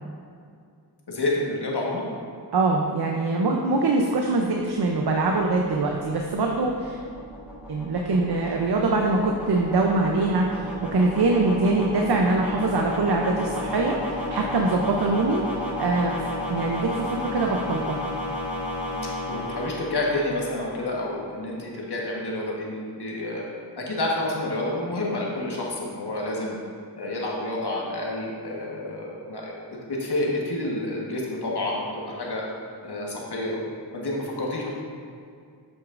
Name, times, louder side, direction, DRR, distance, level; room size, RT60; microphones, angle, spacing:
voice 1, 1.1-2.0 18.8-23.4 23.8-26.6 26.9-29.5 29.9-32.4 32.8-33.6 33.9-34.7, left 2 dB, 65° left, -3 dB, 1.4 m, -29 dB
voice 2, 2.5-7.0 7.7-15.4 15.8-18.0, right 3 dB, 65° right, 1 dB, 0.7 m, -23 dB
sound 1, 4.6-20.8, left 1 dB, 5° right, 1.4 m, -33 dB
8.1 x 6.2 x 2.5 m, 2.3 s
cardioid pair, 50°, 42 cm